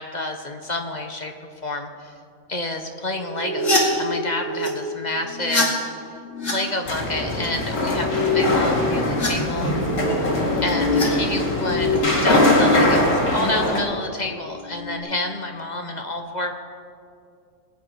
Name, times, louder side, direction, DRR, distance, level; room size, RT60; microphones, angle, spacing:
voice 1, 0.0-1.3 1.6-2.1 2.5-5.7 6.4-9.7 10.6-16.5, left 2 dB, 35° left, 4 dB, 1.0 m, -29 dB
sound 1, 3.1-4.7 5.3-5.6 6.1-6.5 7.2-7.5 7.7-8.4 8.8-11.1 11.4-12.8 13.3-13.7 14.5-15.0, left 3 dB, 60° left, 2.8 m, -25 dB
sound 2, 6.8-13.8, left 1 dB, 90° left, 2.6 m, -22 dB
23.0 x 9.1 x 4.7 m, 2.3 s
omnidirectional pair, 1.5 m